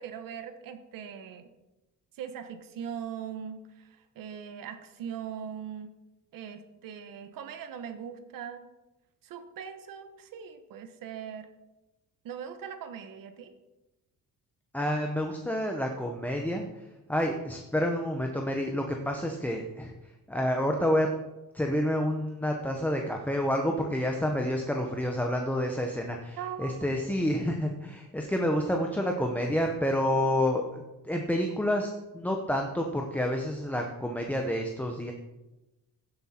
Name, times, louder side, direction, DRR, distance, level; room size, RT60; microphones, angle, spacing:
voice 1, 0.0-1.5 2.2-5.9 6.3-8.6 9.2-11.5 12.2-13.5 26.4-26.8, right 8 dB, 85° right, 9 dB, 1.3 m, -40 dB
voice 2, 14.7-19.9 20.3-21.1 21.5-35.1, equal, 5° left, 2 dB, 0.7 m, -29 dB
16.0 x 7.6 x 4.3 m, 1.0 s
cardioid pair, 170°, 33 cm